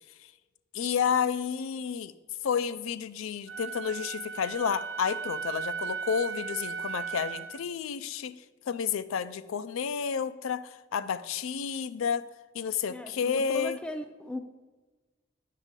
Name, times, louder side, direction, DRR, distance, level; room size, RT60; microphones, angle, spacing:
voice 1, 0.7-2.1 2.4-8.3 8.7-12.3 12.5-13.8, left 7 dB, 80° left, 13 dB, 0.4 m, -30 dB
Wind instrument woodwind instrument, 3.5-7.6, right 7 dB, 85° right, 0.8 m, -36 dB
voice 2, 12.9-14.4, left 1 dB, 5° left, 7 dB, 0.4 m, -38 dB
9.7 x 6.6 x 3.7 m, 1.3 s
head